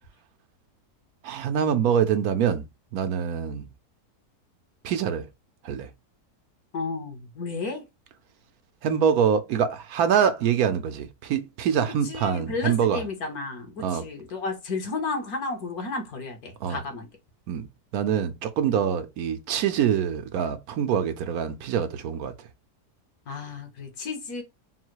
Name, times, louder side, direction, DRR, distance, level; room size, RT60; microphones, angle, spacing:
voice 1, 1.2-2.6 2.9-3.7 4.8-5.3 5.6-5.9 8.8-13.0 13.8-14.1 16.6-16.8 17.5-17.7 17.9-22.3, right 8 dB, 70° right, 1.1 m, -25 dB
voice 2, 6.7-7.9 12.0-17.1 23.3-24.4, left 3 dB, 70° left, 1.6 m, -32 dB
3.9 x 2.1 x 4.5 m
omnidirectional pair, 1.7 m